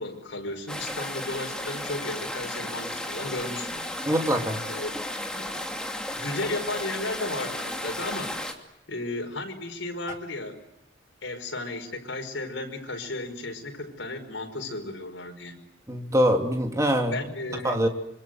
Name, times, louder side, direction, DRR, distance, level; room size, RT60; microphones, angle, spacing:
voice 1, 0.0-3.9 4.7-5.0 5.3-5.7 6.1-8.3 8.9-10.6 11.2-15.6 17.1-17.8, left 2 dB, 85° left, 4 dB, 5.3 m, -34 dB
sound 1, 0.7-8.5, left 1 dB, 5° left, 2.7 m, -34 dB
voice 2, 4.0-4.6 15.9-17.2 17.6-17.9, equal, 15° right, 3 dB, 2.9 m, -23 dB
26.5 x 25.0 x 7.9 m, 0.82 s
head